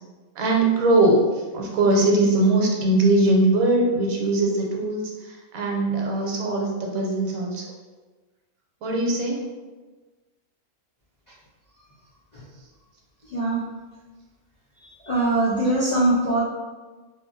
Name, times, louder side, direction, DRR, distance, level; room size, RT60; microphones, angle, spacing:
voice 1, 0.4-1.2 1.5-5.1 5.5-7.6 8.8-9.4, right 2 dB, 85° right, -1 dB, 1.1 m, -21 dB
voice 2, 13.3-13.6 15.0-16.4, right 2 dB, 65° left, -8 dB, 0.4 m, -21 dB
2.8 x 2.4 x 2.6 m, 1.3 s
omnidirectional pair, 1.5 m